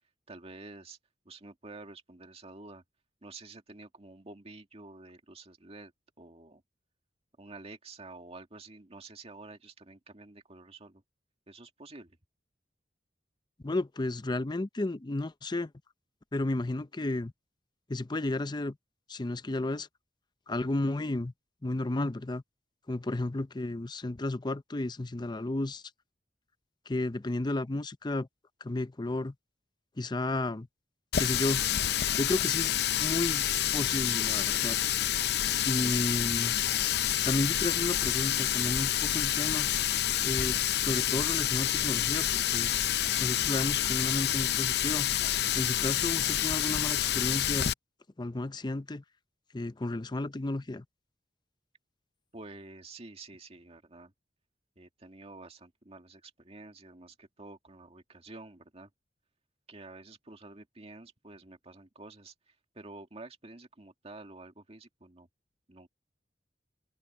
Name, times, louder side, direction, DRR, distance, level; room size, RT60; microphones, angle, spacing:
voice 1, 0.3-1.0 1.2-2.8 3.2-5.9 6.2-6.6 7.4-11.0 11.5-12.2 52.3-54.1 54.8-58.9 59.7-65.3 65.7-65.9, right 2 dB, 35° right, 2.1 m, -49 dB
voice 2, 13.6-15.7 16.3-17.3 17.9-18.8 19.1-19.9 20.5-21.3 21.6-22.4 22.9-25.8 26.9-28.3 28.6-29.3 30.0-30.7 31.2-31.6 32.1-33.5 33.7-35.0 35.7-36.6 37.2-39.7 40.2-42.7 43.2-45.1 45.5-47.7 48.2-49.0 49.5-50.8, left 2 dB, 25° left, 0.6 m, -33 dB
Water tap faucet, 31.1-47.7, left 11 dB, 65° left, 0.6 m, -28 dB
open air
head